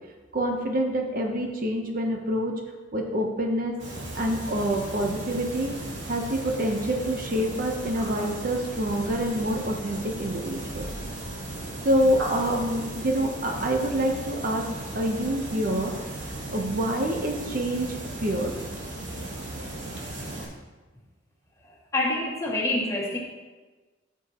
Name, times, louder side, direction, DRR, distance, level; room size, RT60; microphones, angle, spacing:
voice 1, 0.3-2.5 2.9-3.7 4.1-5.7 6.0-10.9 11.8-14.7 14.9-18.5, equal, 50° right, 2 dB, 0.9 m, -27 dB
sound 1, 3.8-20.4, right 1 dB, 80° right, 2.9 m, -36 dB
voice 2, 21.9-23.2, left 2 dB, 15° left, -5 dB, 2.1 m, -26 dB
13.5 x 7.0 x 3.0 m, 1.3 s
head